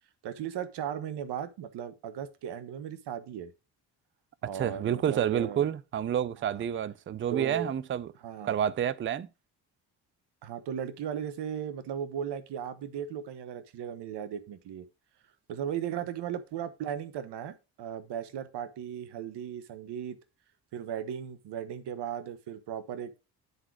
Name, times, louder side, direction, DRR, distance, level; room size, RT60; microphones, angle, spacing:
voice 1, 0.2-3.5 4.4-5.7 6.4-6.6 7.3-7.7 8.2-8.6 10.4-14.9 15.5-20.2 20.7-23.2, right 9 dB, 60° right, 1.0 m, -37 dB
voice 2, 4.5-8.1 8.4-9.3, right 9 dB, 25° right, 0.5 m, -29 dB
9.4 x 4.0 x 4.6 m
hypercardioid pair, 55°, 46 cm